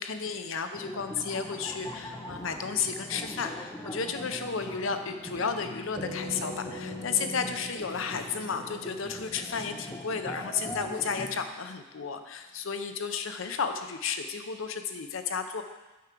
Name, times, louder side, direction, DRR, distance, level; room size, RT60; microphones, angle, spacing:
voice 1, 0.0-15.6, left 5 dB, 65° left, 8 dB, 0.7 m, -33 dB
sound 1, 0.7-11.3, left 1 dB, 15° left, 0.9 m, -42 dB
sound 2, 6.0-10.6, left 1 dB, 30° right, 1.2 m, -42 dB
8.4 x 4.7 x 6.0 m, 1.1 s
head